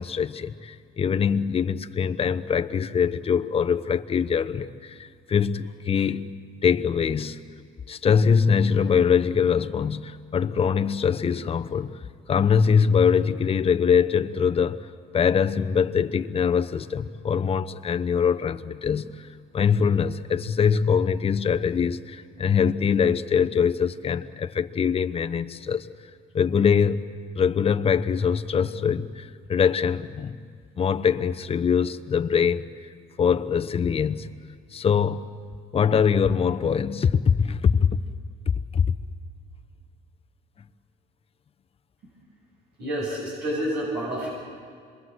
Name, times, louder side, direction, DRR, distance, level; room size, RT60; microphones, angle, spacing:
voice 1, 0.0-6.3 6.6-7.4 7.9-11.9 12.3-14.9 15.1-19.3 19.5-25.9 26.3-27.0 27.3-30.4 30.8-32.7 33.2-34.3 34.7-35.3 35.7-38.0 38.7-38.9, left 6 dB, 35° left, 0.9 m, -23 dB
voice 2, 42.8-44.3, right 1 dB, 75° right, 7.6 m, -28 dB
27.0 x 22.5 x 7.9 m
cardioid pair, 110°, 17 cm